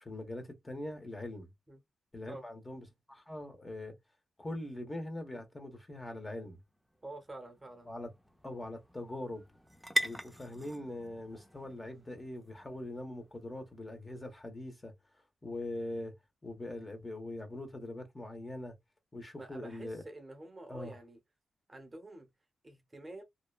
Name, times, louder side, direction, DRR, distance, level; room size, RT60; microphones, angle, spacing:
voice 1, 0.0-1.5 2.1-3.9 4.4-6.6 7.9-8.1 8.4-9.4 10.0-14.9 15.4-16.1 16.4-18.7 19.1-20.0 20.7-20.9, left 1 dB, 25° left, 1.0 m, -42 dB
sound 1, 6.5-14.2, equal, ahead, 0.5 m, -42 dB
voice 2, 7.0-7.9 19.4-21.2 21.7-22.3 22.6-23.2, right 2 dB, 25° right, 0.8 m, -47 dB
2.8 x 2.2 x 2.3 m
cardioid pair, 80°, 0 cm